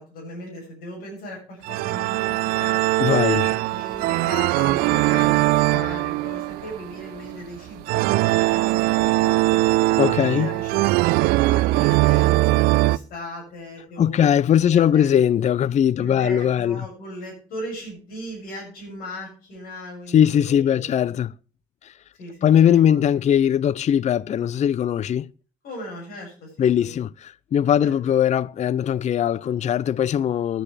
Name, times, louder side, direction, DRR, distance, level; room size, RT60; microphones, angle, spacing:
voice 1, 0.0-3.0 3.4-9.6 10.2-15.2 16.0-20.9 22.2-23.0 25.6-27.0 27.8-28.1, left 1 dB, 70° left, 7.0 m, -38 dB
sound 1, 1.6-13.0, right 19 dB, 80° right, 0.4 m, -21 dB
voice 2, 3.0-3.5 10.0-10.5 14.0-16.9 20.1-21.3 21.8-21.9 22.4-25.3 26.6-30.6, left 9 dB, 50° left, 0.5 m, -20 dB
16.0 x 9.1 x 3.3 m
hypercardioid pair, 45°, 16 cm